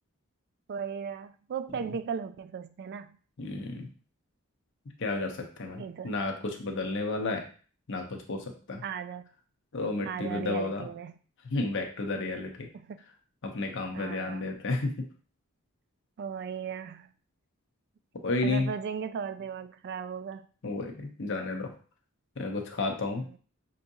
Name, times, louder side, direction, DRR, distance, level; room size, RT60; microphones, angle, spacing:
voice 1, 0.7-3.2 5.8-6.1 8.8-9.3 10.0-11.1 12.7-13.0 13.9-14.6 16.2-17.1 18.4-20.4 23.1-23.4, right 6 dB, 50° right, 11 dB, 0.3 m, -37 dB
voice 2, 3.4-3.9 5.0-7.4 7.9-8.8 9.7-10.9 11.4-12.7 13.4-15.1 18.2-18.7 20.6-21.7 22.4-23.2, left 3 dB, 60° left, 3 dB, 0.8 m, -32 dB
5.7 x 2.8 x 2.7 m, 0.40 s
head